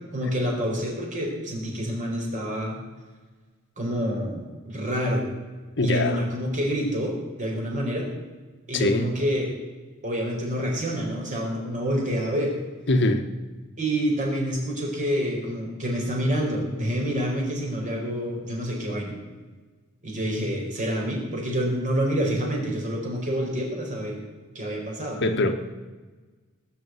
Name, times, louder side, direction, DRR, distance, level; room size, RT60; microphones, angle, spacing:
voice 1, 0.1-2.8 3.8-5.2 5.8-8.1 8.7-9.5 10.0-12.6 13.8-19.1 20.0-24.2 24.5-25.3, equal, 40° right, -1 dB, 4.6 m, -27 dB
voice 2, 5.8-6.2 8.7-9.0 12.9-13.2 25.2-25.5, left 2 dB, 60° left, 7 dB, 1.2 m, -22 dB
18.0 x 6.9 x 9.4 m, 1.3 s
head